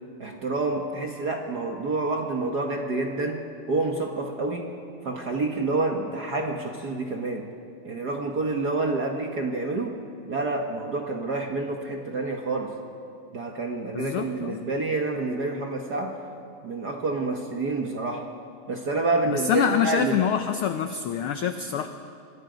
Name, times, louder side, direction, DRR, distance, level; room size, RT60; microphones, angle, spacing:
voice 1, 0.2-3.4 3.7-4.7 5.0-7.5 7.8-9.9 10.3-12.7 13.3-16.2 16.6-18.2 18.7-20.2, right 3 dB, 50° right, 2 dB, 1.3 m, -28 dB
voice 2, 13.9-14.6 19.3-21.9, left 8 dB, 85° left, 8 dB, 1.2 m, -26 dB
26.0 x 21.0 x 5.2 m, 2.4 s
omnidirectional pair, 3.4 m